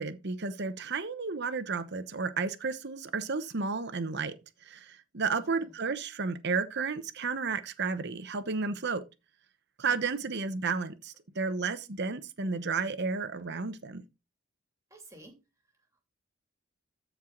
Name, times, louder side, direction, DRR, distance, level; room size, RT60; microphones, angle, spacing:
voice 1, 0.0-4.3 4.6-9.0 9.8-14.0, right 4 dB, 55° right, 0.9 m, -32 dB
voice 2, 5.3-5.7 9.8-10.3 11.3-11.4 14.9-15.4, right 1 dB, 15° right, 2.6 m, -53 dB
13.5 x 4.7 x 3.7 m
head